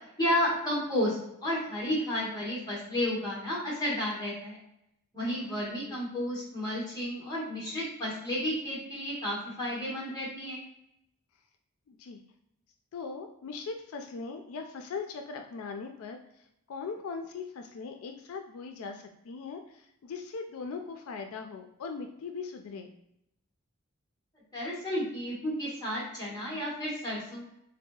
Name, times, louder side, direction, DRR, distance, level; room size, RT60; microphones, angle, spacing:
voice 1, 0.2-4.6 5.1-10.6 24.5-27.4, left 1 dB, 15° left, -6 dB, 1.2 m, -32 dB
voice 2, 11.9-12.2 12.9-16.2 16.7-22.9, left 4 dB, 85° left, 5 dB, 0.4 m, -40 dB
3.8 x 2.7 x 2.3 m, 0.79 s
head